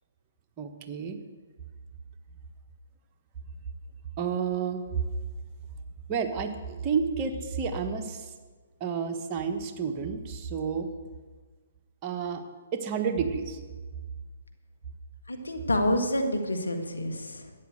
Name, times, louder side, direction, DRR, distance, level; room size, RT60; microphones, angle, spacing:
voice 1, 0.6-1.2 4.2-4.8 6.1-8.3 8.8-10.9 12.0-12.4 12.7-13.6, right 6 dB, 30° right, 5 dB, 1.4 m, -30 dB
voice 2, 15.3-17.4, left 1 dB, 90° left, 5 dB, 1.8 m, -28 dB
13.0 x 9.7 x 6.5 m, 1.4 s
figure-of-eight pair, 130°, 0 cm